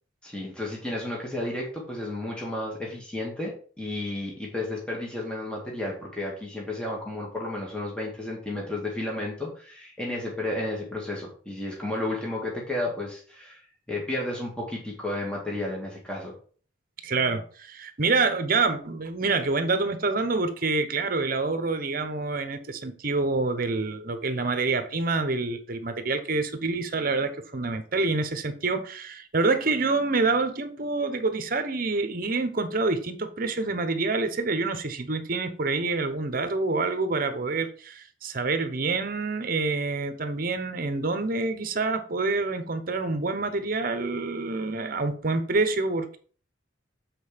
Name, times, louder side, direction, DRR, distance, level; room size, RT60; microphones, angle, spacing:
voice 1, 0.2-13.6 13.9-16.3, left 1 dB, 5° left, 1.8 m, -32 dB
voice 2, 17.0-46.2, right 3 dB, 50° right, 1.0 m, -27 dB
7.8 x 4.3 x 5.1 m
head